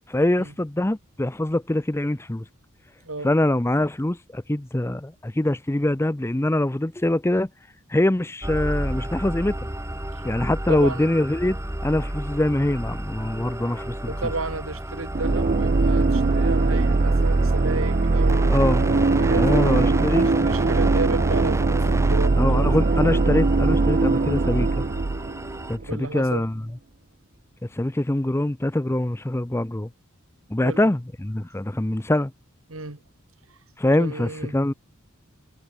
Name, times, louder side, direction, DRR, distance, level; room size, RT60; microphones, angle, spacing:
voice 1, 0.1-2.4 3.2-7.5 7.9-9.5 10.2-11.6 11.8-14.1 18.5-18.9 19.3-20.3 22.4-24.8 25.7-26.5 27.7-29.9 30.5-32.3 33.8-34.7, left 1 dB, 10° left, 0.6 m, -23 dB
sound 1, 8.4-25.8, right 1 dB, 15° right, 1.9 m, -32 dB
voice 2, 10.7-11.0 14.1-18.5 19.2-22.9 25.8-26.4 30.6-30.9 32.7-33.0 33.5-33.6 34.0-34.6, right 3 dB, 75° right, 2.5 m, -32 dB
sound 2, 15.1-25.9, right 3 dB, 40° right, 0.6 m, -21 dB
head